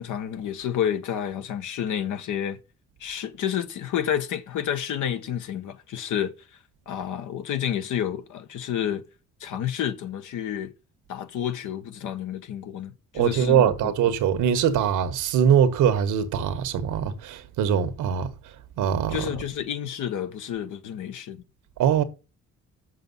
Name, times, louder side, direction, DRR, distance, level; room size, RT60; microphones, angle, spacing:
voice 1, 0.0-2.6 3.0-6.6 6.9-9.0 9.4-10.7 11.1-13.9 19.1-21.4, left 9 dB, 80° left, 1.4 m, -30 dB
voice 2, 13.1-18.3 18.8-19.2 21.8-22.0, right 8 dB, 90° right, 1.4 m, -22 dB
7.0 x 6.9 x 5.4 m
cardioid pair, 90°, 30 cm